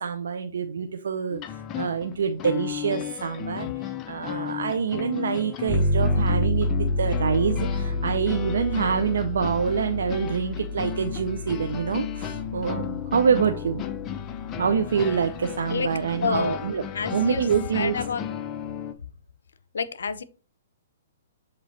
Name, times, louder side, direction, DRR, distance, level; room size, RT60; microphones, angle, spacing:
voice 1, 0.0-6.7 7.0-13.9 14.6-16.8 17.1-17.9, right 6 dB, 75° right, 7 dB, 0.6 m, -26 dB
sound 1, 1.3-18.9, left 10 dB, 25° left, 0.5 m, -35 dB
sound 2, 5.7-15.0, left 1 dB, 5° right, 2.7 m, -29 dB
voice 2, 16.2-16.6 16.9-17.4 17.7-18.2 19.7-20.2, left 5 dB, 80° left, 15 dB, 0.6 m, -28 dB
7.5 x 3.1 x 4.1 m, 0.37 s
hypercardioid pair, 140°, 0 cm